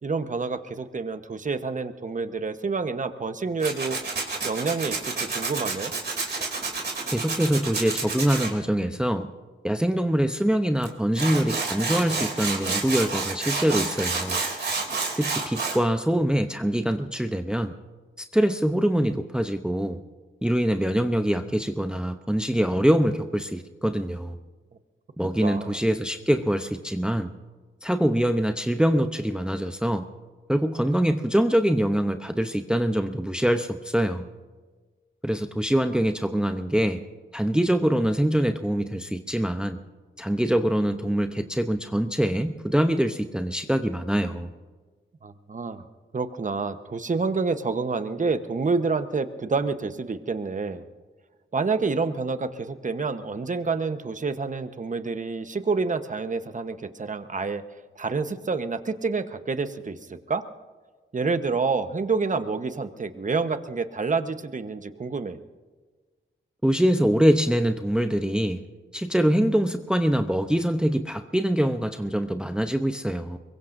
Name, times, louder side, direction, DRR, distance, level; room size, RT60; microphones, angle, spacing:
voice 1, 0.0-4.0 4.4-5.9 25.4-25.8 45.2-45.8 46.1-50.8 51.5-57.6 58.0-60.4 61.1-65.4, right 4 dB, 40° right, 9 dB, 1.1 m, -28 dB
Tools, 3.6-8.5 10.8-10.9 11.1-15.8, right 4 dB, 55° right, 3.0 m, -29 dB
voice 2, 7.1-9.3 9.6-14.4 15.2-17.7 18.2-20.0 20.4-24.4 25.2-27.3 27.8-30.1 30.5-34.3 35.2-37.0 37.3-39.8 40.2-44.5 66.6-68.6 68.9-73.4, equal, 5° right, 7 dB, 0.8 m, -24 dB
24.0 x 22.0 x 2.7 m, 1.4 s
cardioid pair, 75°, 20 cm